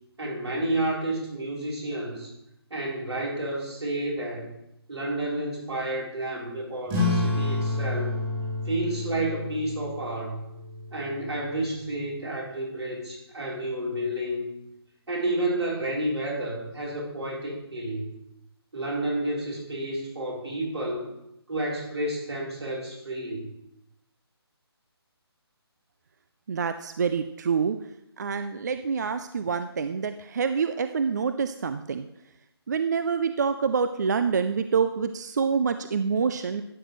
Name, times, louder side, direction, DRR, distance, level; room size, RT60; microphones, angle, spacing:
voice 1, 0.2-2.3 2.7-4.5 4.9-8.1 8.6-10.4 10.9-14.5 15.1-18.1 18.7-21.1 21.5-23.5, right 1 dB, 80° right, -3 dB, 3.8 m, -30 dB
sound 1, 6.9-11.9, left 2 dB, 20° right, 2.9 m, -30 dB
voice 2, 26.5-27.8 28.2-32.1 32.7-36.6, right 6 dB, 40° right, 10 dB, 0.4 m, -26 dB
12.0 x 8.1 x 3.1 m, 0.84 s
hypercardioid pair, 165°, 14 cm